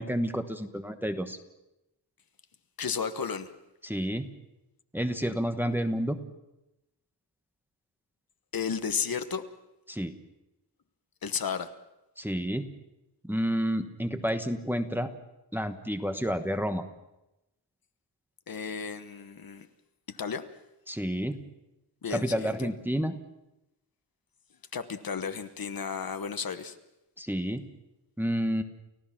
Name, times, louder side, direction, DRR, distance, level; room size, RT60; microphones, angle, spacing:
voice 1, 0.0-1.4 3.8-4.3 4.9-6.2 9.9-10.1 12.2-12.7 13.2-15.1 15.5-16.8 20.9-21.4 22.1-23.2 27.2-27.7 28.2-28.6, equal, 5° right, 6 dB, 1.1 m, -30 dB
voice 2, 2.8-3.5 8.5-9.4 11.2-11.7 18.5-19.7 20.1-20.4 22.0-22.7 24.7-26.8, left 6 dB, 55° left, 9 dB, 1.2 m, -33 dB
29.5 x 16.0 x 5.9 m, 0.94 s
wide cardioid pair, 155°, 42 cm